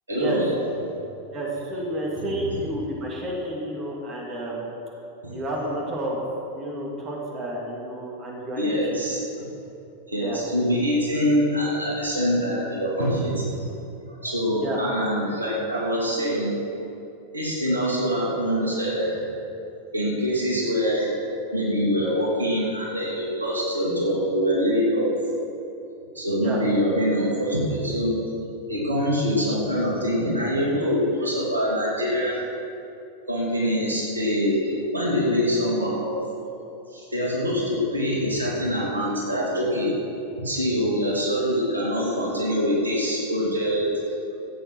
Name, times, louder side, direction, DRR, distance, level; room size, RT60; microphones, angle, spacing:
voice 1, 0.1-0.5 2.2-2.6 5.2-5.3 8.6-9.5 10.1-13.7 14.1-16.6 17.3-19.2 19.9-21.1 21.5-25.2 26.1-28.1 28.7-32.5 33.3-36.2 36.9-40.0 40.4-43.9, equal, 80° right, -4 dB, 2.8 m, -24 dB
voice 2, 1.3-4.7 5.3-6.2 6.5-9.0 10.2-10.4 14.5-14.8 26.4-26.6, right 1 dB, 30° right, -2 dB, 2.5 m, -31 dB
14.5 x 8.1 x 6.1 m, 2.9 s
figure-of-eight pair, 90°, 0 cm